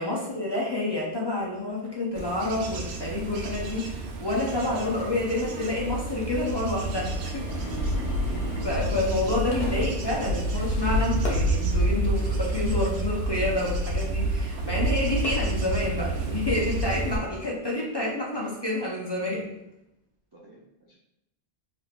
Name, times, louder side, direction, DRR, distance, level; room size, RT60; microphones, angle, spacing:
voice 1, 0.0-7.6 8.6-19.5, left 2 dB, 40° left, -4 dB, 0.4 m, -28 dB
Fireworks, 0.9-15.9, left 2 dB, 60° left, 1.0 m, -46 dB
Bird / Insect / Wind, 2.1-17.2, right 1 dB, 80° right, 0.8 m, -29 dB
sound 1, 6.9-10.3 10.7-11.1, left 1 dB, 85° left, 1.5 m, -39 dB
voice 2, 8.1-8.4 20.3-21.0, right 1 dB, 35° right, -5 dB, 0.4 m, -52 dB
3.2 x 3.1 x 2.4 m, 0.86 s
omnidirectional pair, 1.1 m